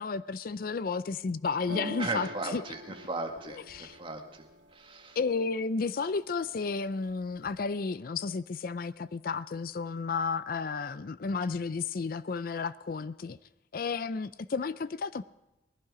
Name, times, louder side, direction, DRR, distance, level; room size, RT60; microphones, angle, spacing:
voice 1, 0.0-2.6 3.5-3.9 5.2-13.4 13.7-15.3, left 4 dB, 50° left, 16 dB, 0.4 m, -32 dB
sound 1, 1.7-5.5 6.0-6.6 6.9-7.7, equal, 85° right, 2.1 m, -45 dB
voice 2, 2.0-4.5 4.7-5.2, right 3 dB, 30° right, 3 dB, 1.7 m, -37 dB
21.0 x 12.0 x 4.9 m, 0.97 s
head